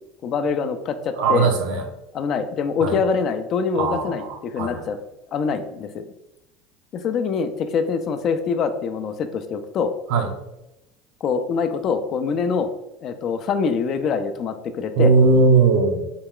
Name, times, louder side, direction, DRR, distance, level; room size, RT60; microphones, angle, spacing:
voice 1, 0.2-1.5 2.1-5.0 5.3-6.0 6.9-9.9 11.2-12.7 13.0-15.1, left 5 dB, 50° left, 9 dB, 0.4 m, -24 dB
voice 2, 1.2-1.8 2.8-3.0 3.7-4.9 10.1-10.3 15.0-16.0, right 4 dB, 75° right, 4 dB, 0.7 m, -19 dB
4.0 x 2.3 x 3.6 m, 0.90 s
supercardioid pair, 100°, 0 cm